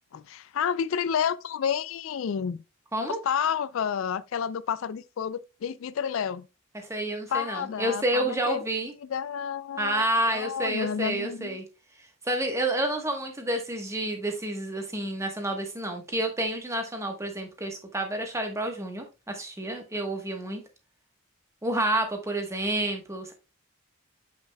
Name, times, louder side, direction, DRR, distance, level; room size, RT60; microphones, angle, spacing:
voice 1, 0.1-2.6 3.0-6.5 7.3-8.6 9.1-11.6, left 7 dB, 65° left, 0.3 m, -30 dB
voice 2, 6.7-8.9 9.8-11.6 12.2-20.6 21.6-23.3, right 1 dB, 15° right, 1.1 m, -29 dB
7.6 x 5.9 x 2.2 m
head